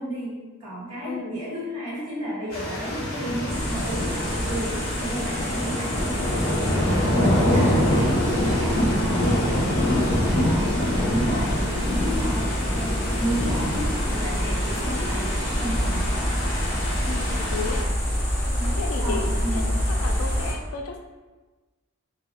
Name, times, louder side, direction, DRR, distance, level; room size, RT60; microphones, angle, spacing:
voice 1, 0.0-8.9 9.2-10.0 10.2-16.3 18.5-19.8, right 1 dB, 75° right, -7 dB, 1.2 m, -33 dB
sound 1, 2.5-17.8, left 1 dB, 65° left, 0.8 m, -25 dB
sound 2, 3.5-20.5, equal, 10° left, 0.6 m, -28 dB
voice 2, 7.4-7.8 10.9-11.2 17.1-17.8 18.8-19.6 20.0-21.1, left 4 dB, 80° left, 4 dB, 0.4 m, -33 dB
3.4 x 2.1 x 2.5 m, 1.2 s
head